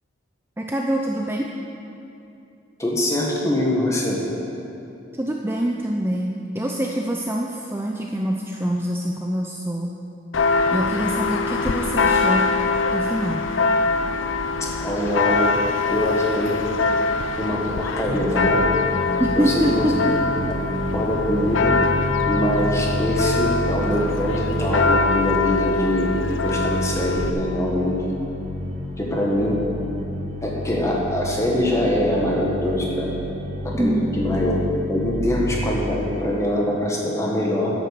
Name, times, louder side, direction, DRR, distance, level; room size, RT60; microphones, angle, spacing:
voice 1, 0.6-1.5 5.2-9.9 10.7-12.4 12.9-13.4 19.2-20.0 33.7-34.1, right 1 dB, 10° right, 0 dB, 0.5 m, -25 dB
voice 2, 2.8-4.2 14.8-15.5 15.9-16.6 17.4-18.7 19.4-20.1 20.9-21.7 22.3-26.1 26.4-27.9 29.0-29.6 30.4-33.1 33.8-34.6 34.9-37.7, left 1 dB, 15° left, -3 dB, 1.7 m, -23 dB
Church bell, 10.3-27.3, left 4 dB, 90° left, 0.7 m, -23 dB
sound 1, 18.1-36.7, right 1 dB, 40° right, 0.8 m, -29 dB
10.5 x 8.2 x 6.8 m, 2.8 s
head